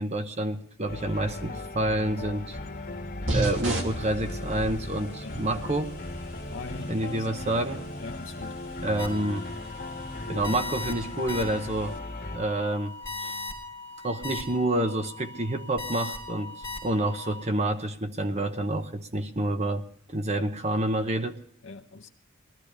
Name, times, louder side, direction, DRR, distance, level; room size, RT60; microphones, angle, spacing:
voice 1, 0.0-2.6 3.3-6.0 6.9-7.8 8.8-9.4 10.3-12.0 12.3-12.9 13.2-13.4 14.0-16.6 16.8-21.4, right 1 dB, 30° right, 7 dB, 0.9 m, -28 dB
sound 1, 0.9-12.4, left 2 dB, 45° left, 2.0 m, -37 dB
sound 2, 3.3-12.0, right 1 dB, 65° right, 2.5 m, -38 dB
voice 2, 6.5-7.3 8.0-8.6 20.3-20.5 21.6-22.1, left 3 dB, 65° left, 0 dB, 0.8 m, -42 dB
sound 3, 9.0-17.4, left 3 dB, 10° left, 3.3 m, -39 dB
20.5 x 13.5 x 3.3 m, 0.65 s
head